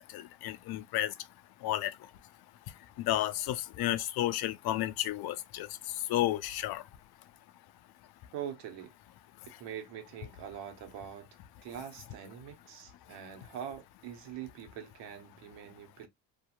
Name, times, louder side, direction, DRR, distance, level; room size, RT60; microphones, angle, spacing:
voice 1, 0.1-1.1 1.6-1.9 3.0-5.7 6.1-6.8, left 14 dB, 65° left, 0.5 m, -32 dB
voice 2, 8.3-8.9 9.6-11.3 11.6-16.1, right 9 dB, 85° right, 0.9 m, -43 dB
2.8 x 2.4 x 2.4 m
cardioid pair, 90°, 41 cm